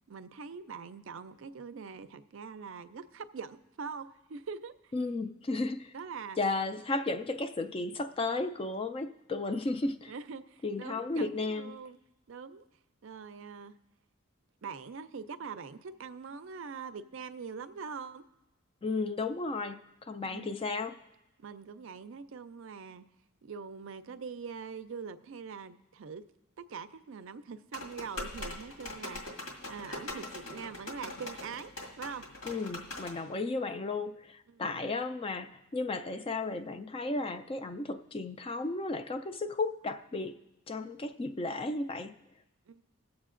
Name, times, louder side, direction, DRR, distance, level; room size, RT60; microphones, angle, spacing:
voice 1, 0.1-4.9 5.9-6.4 10.1-12.0 12.3-12.6 13.0-13.7 14.6-18.2 20.2-20.6 21.4-23.0 23.4-26.2 26.6-29.2 29.7-31.7 32.0-32.3 34.5-34.8 42.7-42.8, right 5 dB, 65° right, 11 dB, 0.4 m, -43 dB
voice 2, 4.9-5.9 6.4-10.1 10.6-11.7 18.8-19.8 20.1-21.0 32.4-40.4 40.7-42.1, left 3 dB, 25° left, 9 dB, 0.3 m, -34 dB
sound 1, 27.7-33.2, left 2 dB, 80° left, 1.9 m, -42 dB
21.5 x 7.2 x 2.5 m, 1.0 s
head